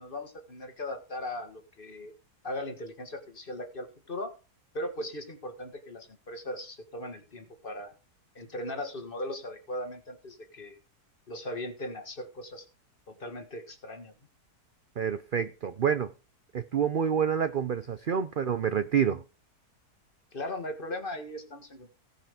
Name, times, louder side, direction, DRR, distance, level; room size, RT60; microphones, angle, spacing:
voice 1, 0.0-2.1 2.4-4.3 4.7-7.9 8.3-10.8 11.3-12.6 13.1-14.1 20.3-21.9, left 1 dB, 35° left, 1.7 m, -38 dB
voice 2, 15.0-16.1 16.5-19.2, right 8 dB, 55° right, 0.5 m, -28 dB
17.0 x 5.7 x 5.1 m
omnidirectional pair, 1.7 m